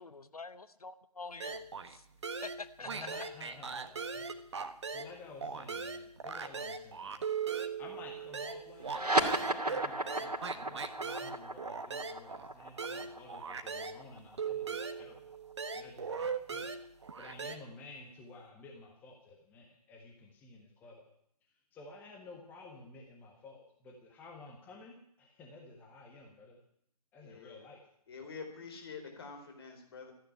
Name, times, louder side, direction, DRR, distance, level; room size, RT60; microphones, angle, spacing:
voice 1, 0.0-1.6 1.9-2.0 2.4-3.1, left 4 dB, 65° left, 14 dB, 0.9 m, -46 dB
sound 1, 1.4-2.0 2.2-5.1 5.4-14.0 14.4-17.6, right 5 dB, 45° right, 1.4 m, -39 dB
voice 2, 2.8-4.3 4.9-9.1 9.4-15.3 15.7-16.7 17.0-21.1 21.7-26.6 27.1-27.8 28.2-28.3, left 3 dB, 10° left, 1 dB, 1.5 m, -53 dB
sound 2, 8.8-15.7, right 2 dB, 75° right, 2.6 m, -35 dB
voice 3, 27.2-27.6 28.1-30.1, left 5 dB, 40° left, 4 dB, 4.3 m, -47 dB
14.5 x 10.0 x 9.7 m, 0.68 s
figure-of-eight pair, 145°, 20 cm